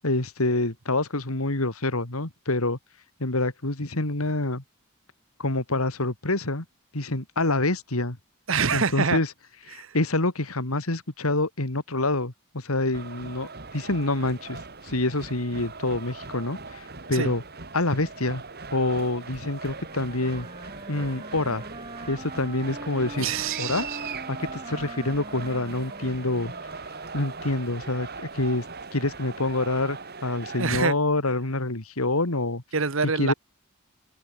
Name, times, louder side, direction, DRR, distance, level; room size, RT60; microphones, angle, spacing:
voice 1, 0.0-2.8 3.2-4.6 5.4-6.6 6.9-8.2 8.7-9.3 9.7-17.4 17.7-18.4 18.7-20.5 20.9-21.6 22.1-23.3 23.6-23.9 24.3-26.5 27.1-28.6 28.9-32.6 33.2-33.3, left 2 dB, 85° left, 2.8 m, -27 dB
voice 2, 8.5-9.2 9.7-9.9 17.1-17.3 23.2-24.0 30.6-31.0 32.7-33.3, right 5 dB, 65° right, 1.3 m, -26 dB
sound 1, 12.9-30.9, right 4 dB, 45° right, 2.7 m, -40 dB
Wind instrument woodwind instrument, 19.6-27.7, right 2 dB, 25° right, 5.7 m, -43 dB
head